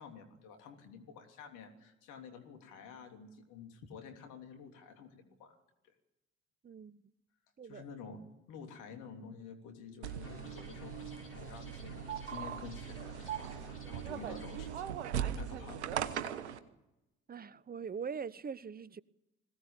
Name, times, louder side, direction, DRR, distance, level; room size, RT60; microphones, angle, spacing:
voice 1, 0.0-5.6 5.8-5.9 7.6-14.8 15.4-15.9, left 6 dB, 65° left, 3.3 m, -50 dB
voice 2, 6.6-7.0 7.6-7.9 17.3-19.0, right 6 dB, 25° right, 0.9 m, -42 dB
sound 1, 10.0-16.6, right 9 dB, 80° right, 1.2 m, -39 dB
sound 2, 10.2-14.6, left 1 dB, 40° left, 6.5 m, -54 dB
21.5 x 17.5 x 8.9 m
figure-of-eight pair, 45°, 33 cm